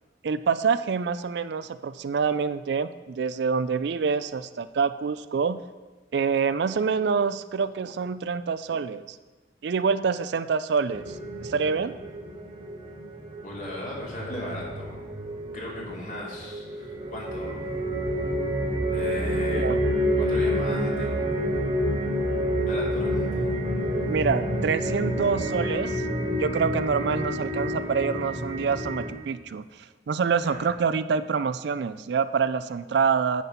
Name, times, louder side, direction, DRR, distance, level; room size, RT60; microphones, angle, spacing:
voice 1, 0.2-5.6 6.1-9.2 9.6-11.2 11.4-11.9 19.5-19.8 24.1-26.0 26.3-33.4, right 5 dB, 60° right, 13 dB, 0.4 m, -26 dB
sound 1, 10.9-29.1, equal, 25° right, 1.6 m, -28 dB
voice 2, 13.4-15.1 15.5-17.7 18.9-19.7 20.2-21.3 22.6-23.5 30.4-30.7, left 1 dB, 40° left, -4 dB, 2.8 m, -37 dB
9.3 x 7.6 x 5.6 m, 1.2 s
head